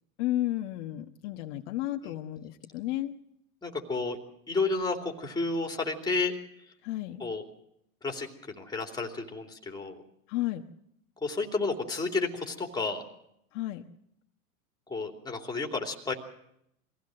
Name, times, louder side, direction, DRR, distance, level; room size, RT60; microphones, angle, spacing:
voice 1, 0.2-3.1 6.8-7.2 10.3-10.6 13.5-13.8, left 15 dB, 55° left, 5 dB, 1.3 m, -32 dB
voice 2, 3.6-4.2 4.5-6.3 7.2-7.4 8.0-8.3 8.6-10.0 11.2-13.0 14.9-16.1, left 3 dB, 10° left, 4 dB, 2.9 m, -31 dB
23.0 x 16.5 x 7.7 m, 0.76 s
hypercardioid pair, 120°, 42 cm